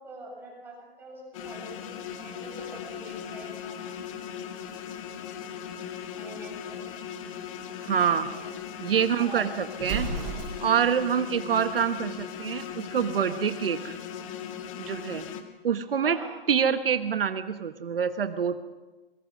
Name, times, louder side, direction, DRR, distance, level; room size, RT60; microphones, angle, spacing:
voice 1, 0.0-3.8 6.1-6.8 8.3-8.6 9.2-9.5 16.0-16.3, right 2 dB, 5° right, -3 dB, 7.8 m, -45 dB
sound 1, 1.3-15.4, left 8 dB, 35° left, 2.0 m, -38 dB
voice 2, 7.8-8.3 8.8-10.1 10.6-14.0 14.8-15.3 15.6-16.2 16.5-18.6, right 7 dB, 70° right, 9 dB, 1.4 m, -26 dB
Explosion, 9.8-10.9, right 4 dB, 30° right, 8.0 m, -33 dB
22.5 x 22.5 x 6.3 m, 1.2 s
hypercardioid pair, 155°, 29 cm